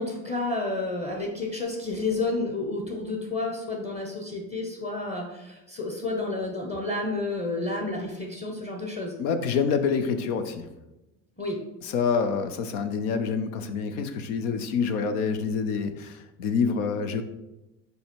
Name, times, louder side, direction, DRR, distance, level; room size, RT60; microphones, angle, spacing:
voice 1, 0.0-9.2 11.4-11.6, left 2 dB, 20° left, 0 dB, 1.1 m, -30 dB
voice 2, 9.2-10.7 11.8-17.2, left 5 dB, 80° left, 9 dB, 0.8 m, -27 dB
5.6 x 4.7 x 4.5 m, 0.98 s
supercardioid pair, 85°, 43 cm